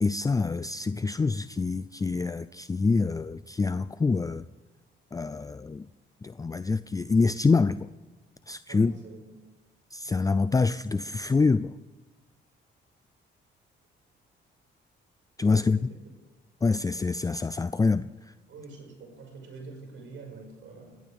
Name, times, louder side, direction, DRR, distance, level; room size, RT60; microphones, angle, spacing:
voice 1, 0.0-4.4 5.1-5.9 6.2-7.8 8.5-8.9 9.9-11.7 15.4-15.8 16.6-18.1, left 4 dB, 15° left, 0.4 m, -26 dB
voice 2, 8.7-9.3 15.6-16.0 18.5-21.0, right 3 dB, 75° right, 6.1 m, -46 dB
20.5 x 18.5 x 3.6 m
cardioid pair, 90°, 20 cm